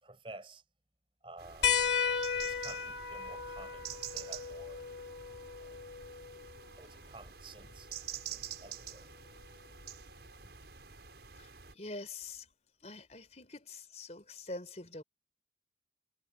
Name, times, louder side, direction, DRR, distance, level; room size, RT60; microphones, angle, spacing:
voice 1, 0.0-0.6 1.2-1.8 2.4-4.9 5.6-5.8 6.8-9.1 10.4-10.5, right 2 dB, 30° right, 4.9 m, -52 dB
sound 1, 1.4-11.7, right 8 dB, 70° right, 6.6 m, -47 dB
sound 2, 1.6-6.7 8.2-8.3 10.0-10.1, left 7 dB, 80° left, 2.2 m, -35 dB
voice 2, 11.4-12.5 12.8-15.0, left 2 dB, 40° left, 4.2 m, -45 dB
head